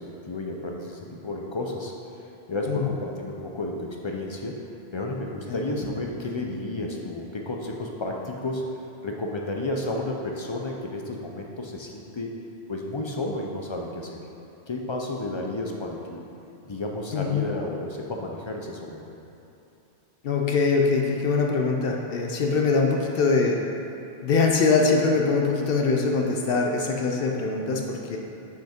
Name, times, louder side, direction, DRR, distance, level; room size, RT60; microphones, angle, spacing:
voice 1, 0.0-4.6 4.9-8.6 9.0-12.3 12.7-14.2 14.7-16.2 16.7-19.1, left 2 dB, 45° left, 0 dB, 0.4 m, -32 dB
voice 2, 5.5-5.8 17.1-17.5 20.2-23.6 24.2-28.2, left 4 dB, 65° left, 1 dB, 0.8 m, -23 dB
5.8 x 5.8 x 4.3 m, 2.8 s
omnidirectional pair, 1.1 m